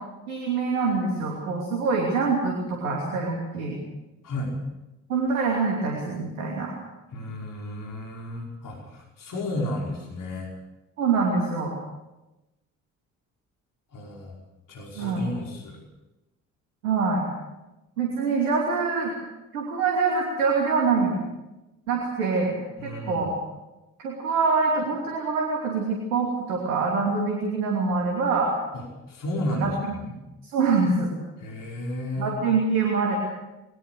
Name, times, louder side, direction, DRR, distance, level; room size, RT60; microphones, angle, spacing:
voice 1, 0.3-3.8 5.1-6.7 11.0-11.7 15.0-15.2 16.8-17.2 18.0-19.1 19.5-21.2 21.9-22.5 22.8-23.3 24.0-28.5 29.6-29.7 30.4-31.1 32.2-33.2, right 4 dB, 80° right, -1 dB, 3.0 m, -25 dB
voice 2, 4.2-4.5 7.1-10.5 13.9-14.4 14.7-15.8 22.8-23.3 28.7-30.2 31.4-32.3, left 1 dB, 50° left, -1 dB, 5.3 m, -33 dB
21.0 x 20.5 x 6.6 m, 1.0 s
figure-of-eight pair, 45°, 42 cm